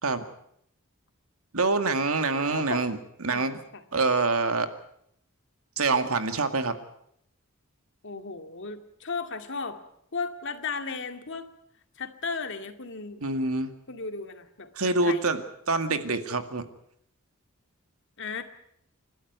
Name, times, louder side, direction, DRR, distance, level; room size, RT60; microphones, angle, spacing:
voice 1, 1.5-3.6 3.9-4.7 5.8-6.8 13.2-13.7 14.8-16.6, right 3 dB, 80° right, 9 dB, 2.1 m, -26 dB
voice 2, 2.5-2.8 3.3-3.8 8.0-9.8 10.1-11.5 12.0-13.2 13.9-15.3 18.2-18.4, left 4 dB, 60° left, 7 dB, 2.3 m, -35 dB
29.0 x 12.5 x 9.4 m, 0.72 s
head